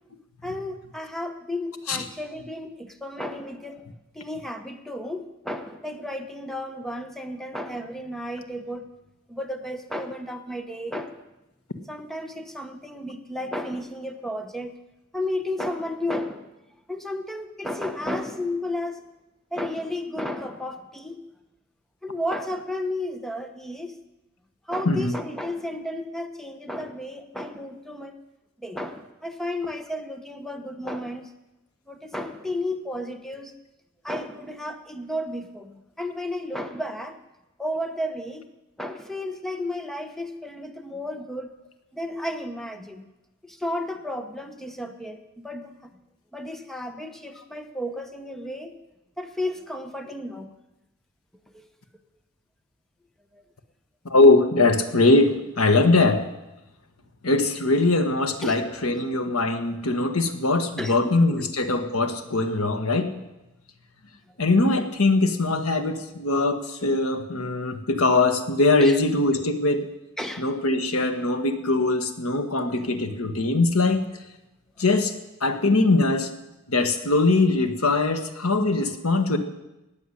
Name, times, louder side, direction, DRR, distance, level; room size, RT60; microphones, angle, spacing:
voice 1, 0.4-3.8 4.1-8.8 9.3-11.2 11.9-14.7 15.1-16.5 16.9-19.0 19.5-21.2 22.0-24.0 24.7-28.2 28.6-31.3 31.9-33.5 34.0-37.2 37.6-38.5 38.8-41.5 41.9-43.0 43.4-45.8 46.3-48.7 49.2-50.5 53.3-53.4 58.4-58.6 58.9-59.0 60.8-61.1 61.4-61.5 68.8-69.0 70.2-70.4, left 1 dB, ahead, 7 dB, 0.9 m, -33 dB
voice 2, 54.1-56.2 57.2-63.1 64.4-69.9 70.4-74.0 74.8-75.1 75.4-76.3 76.7-79.4, left 2 dB, 85° left, 8 dB, 1.5 m, -21 dB
18.5 x 7.1 x 9.9 m, 0.98 s
head